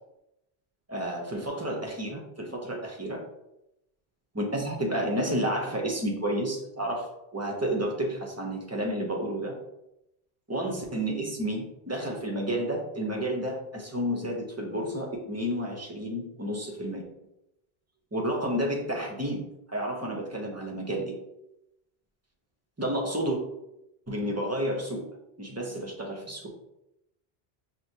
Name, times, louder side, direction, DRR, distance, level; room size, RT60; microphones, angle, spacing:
voice 1, 0.9-3.2 4.3-9.5 10.5-17.0 18.1-21.2 22.8-23.4 24.1-25.0 25.4-26.4, right 1 dB, 20° right, 0 dB, 0.5 m, -31 dB
6.1 x 2.1 x 2.7 m, 0.88 s
omnidirectional pair, 1.1 m